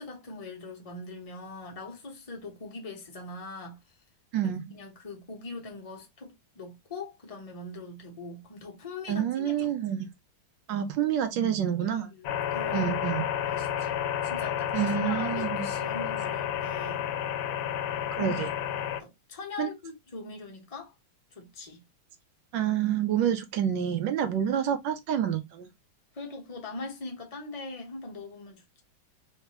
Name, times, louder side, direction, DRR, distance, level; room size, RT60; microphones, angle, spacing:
voice 1, 0.0-3.8 4.7-9.7 11.8-12.9 13.4-17.0 18.2-18.3 19.0-20.9 21.3-21.8 26.1-28.8, left 3 dB, 30° left, 0.6 m, -41 dB
voice 2, 4.3-4.7 9.1-10.1 10.7-12.1 12.7-13.3 14.7-15.7 18.1-18.5 19.6-19.7 22.5-25.7, right 9 dB, 75° right, 1.1 m, -28 dB
sound 1, 12.2-19.0, left 10 dB, 75° left, 1.3 m, -31 dB
3.6 x 3.3 x 2.9 m
omnidirectional pair, 2.4 m